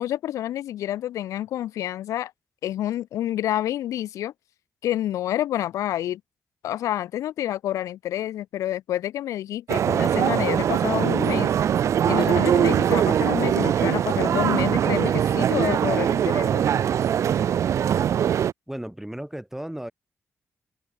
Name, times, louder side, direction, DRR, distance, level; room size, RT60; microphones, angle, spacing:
voice 1, 0.0-2.3 2.6-4.3 4.8-6.2 6.6-11.5 12.1-16.7, left 12 dB, 80° left, 0.4 m, -28 dB
sound 1, 9.7-18.5, right 9 dB, 70° right, 0.4 m, -22 dB
voice 2, 18.7-19.9, right 1 dB, 5° right, 1.1 m, -34 dB
supercardioid pair, 50°, 5 cm